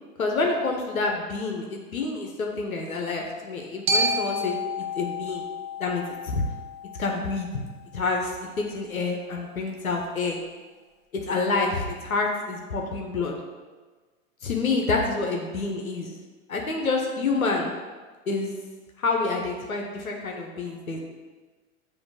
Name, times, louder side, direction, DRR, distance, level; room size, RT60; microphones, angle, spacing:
voice 1, 0.2-4.6 4.9-5.5 5.8-6.4 7.0-7.5 7.9-10.4 11.2-13.3 14.4-16.1 16.5-17.7 18.3-18.5 19.0-21.0, left 3 dB, 85° left, 1 dB, 0.9 m, -28 dB
Glockenspiel, 3.9-8.0, left 1 dB, 30° right, 0.9 m, -30 dB
7.1 x 2.9 x 4.8 m, 1.4 s
figure-of-eight pair, 95°, 41 cm